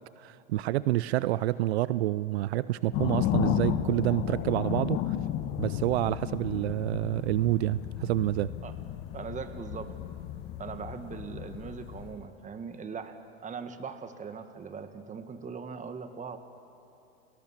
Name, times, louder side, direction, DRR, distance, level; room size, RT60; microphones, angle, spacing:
voice 1, 0.2-5.2 5.6-8.5, right 15 dB, 75° right, 17 dB, 0.6 m, -28 dB
sound 1, 2.9-12.2, left 11 dB, 45° left, 1.2 m, -33 dB
voice 2, 9.1-9.9 10.6-16.4, right 5 dB, 25° right, 9 dB, 1.8 m, -40 dB
29.5 x 19.0 x 7.4 m, 2.7 s
hypercardioid pair, 105°, 32 cm